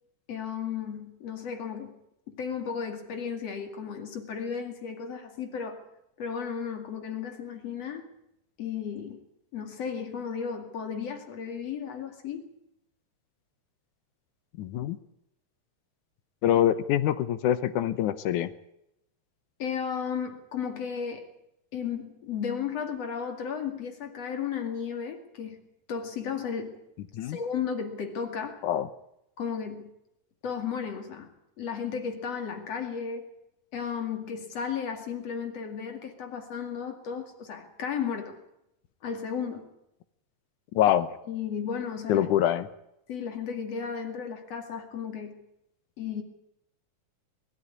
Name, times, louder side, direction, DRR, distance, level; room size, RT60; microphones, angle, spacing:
voice 1, 0.3-1.9 2.3-5.8 6.2-8.1 8.6-9.2 9.5-12.5 19.6-21.3 21.7-25.6 25.9-26.8 27.2-28.6 29.4-29.9 30.4-31.3 31.6-33.3 33.7-38.4 39.0-39.7 41.3-42.3 43.1-45.4 46.0-46.2, left 7 dB, 55° left, 5 dB, 3.2 m, -34 dB
voice 2, 14.6-15.0 16.4-18.5 27.1-27.4 28.6-28.9 40.8-41.1 42.1-42.7, left 11 dB, 80° left, 13 dB, 2.4 m, -24 dB
21.0 x 13.0 x 9.6 m, 0.82 s
omnidirectional pair, 3.5 m